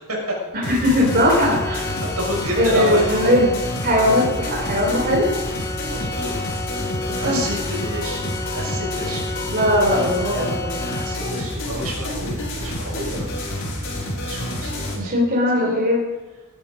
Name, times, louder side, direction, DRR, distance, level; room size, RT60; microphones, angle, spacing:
sound 1, 0.6-14.9, left 1 dB, 60° left, 5.6 m, -28 dB
voice 1, 0.6-2.0 2.6-3.5 3.8-5.2 7.2-7.4 9.5-10.8 14.9-16.0, left 1 dB, 45° right, -2 dB, 3.9 m, -19 dB
Organ, 1.1-11.8, left 3 dB, 15° left, 1.0 m, -32 dB
voice 2, 1.7-3.3 5.9-6.3 7.0-9.3 10.8-13.6 13.9-15.1 15.5-15.8, equal, 80° right, -2 dB, 6.7 m, -30 dB
20.5 x 12.5 x 5.2 m, 1.2 s
head